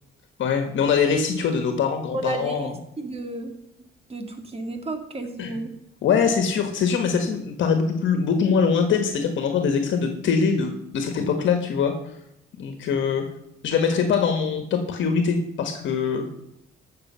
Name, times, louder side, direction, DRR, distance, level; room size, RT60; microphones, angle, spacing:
voice 1, 0.4-2.7 5.4-5.6 6.0-11.9 12.6-13.2 13.6-16.3, left 6 dB, 75° left, 6 dB, 1.5 m, -23 dB
voice 2, 2.1-3.5 4.1-5.7, right 2 dB, 30° right, 5 dB, 2.3 m, -32 dB
15.0 x 6.6 x 5.6 m, 0.80 s
cardioid pair, 90°, 20 cm